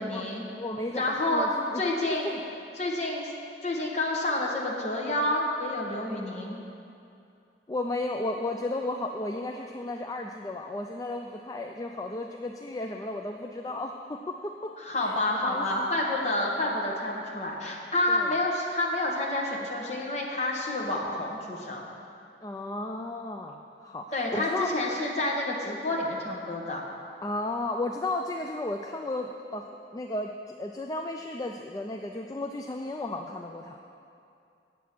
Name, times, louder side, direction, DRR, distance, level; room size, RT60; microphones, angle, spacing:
voice 1, 0.0-0.5 1.0-1.5 1.7-2.4 2.8-3.3 3.6-6.6 14.8-21.8 24.1-26.8, left 1 dB, 40° left, -2 dB, 1.4 m, -29 dB
voice 2, 0.5-1.8 2.2-2.3 7.7-14.7 15.0-15.1 15.4-15.9 18.1-18.3 22.4-24.1 24.3-24.7 27.2-29.7 29.9-33.8, left 2 dB, 20° left, 3 dB, 0.3 m, -34 dB
8.3 x 8.2 x 6.0 m, 2.6 s
head